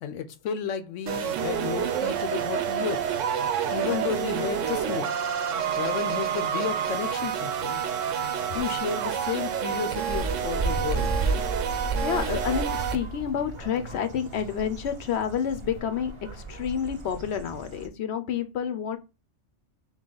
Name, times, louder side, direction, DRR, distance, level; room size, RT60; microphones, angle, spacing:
voice 1, 0.0-3.1 3.7-5.1 5.7-7.8 8.5-11.1, left 8 dB, 90° left, 1.0 m, -32 dB
sound 1, 1.1-13.0, right 8 dB, 80° right, 1.0 m, -28 dB
sound 2, 8.6-15.8, right 1 dB, 5° right, 0.8 m, -41 dB
sound 3, 10.1-17.9, right 3 dB, 35° right, 0.5 m, -33 dB
voice 2, 12.0-19.0, left 8 dB, 65° left, 0.8 m, -29 dB
4.0 x 2.9 x 3.8 m
omnidirectional pair, 1.3 m